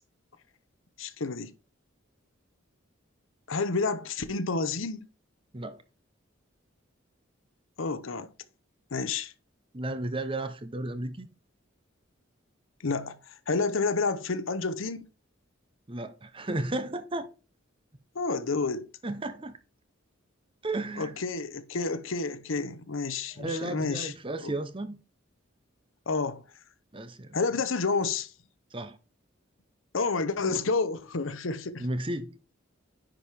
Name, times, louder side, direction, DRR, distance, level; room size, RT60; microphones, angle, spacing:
voice 1, 1.0-1.5 3.5-5.1 7.8-8.3 8.9-9.3 12.8-15.1 18.1-18.9 21.0-24.1 24.4-24.5 26.1-26.4 27.3-28.3 29.9-31.9, left 4 dB, 75° left, 0.8 m, -30 dB
voice 2, 9.7-11.3 15.9-17.3 19.0-19.6 20.6-21.1 23.3-25.0 26.9-27.4 28.7-29.0 31.8-32.4, right 2 dB, 25° right, 0.8 m, -33 dB
10.0 x 4.8 x 3.4 m
head